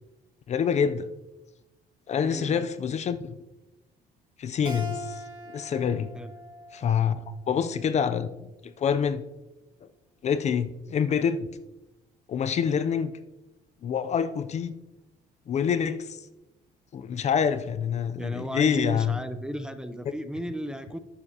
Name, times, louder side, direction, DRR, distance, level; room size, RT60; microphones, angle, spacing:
voice 1, 0.5-1.1 2.1-3.2 4.4-6.1 6.7-7.2 7.5-8.3 8.6-9.2 9.8-9.9 10.2-11.5 12.3-13.2 13.8-14.7 15.5-16.2 16.9-19.2, left 7 dB, 40° left, 12 dB, 0.5 m, -26 dB
voice 2, 2.2-2.7 6.1-6.3 18.2-21.0, equal, 5° right, 10 dB, 0.6 m, -35 dB
Keyboard (musical), 4.6-7.9, left 1 dB, 25° right, 2.1 m, -41 dB
11.5 x 8.8 x 2.8 m, 1.0 s
cardioid pair, 110°, 17 cm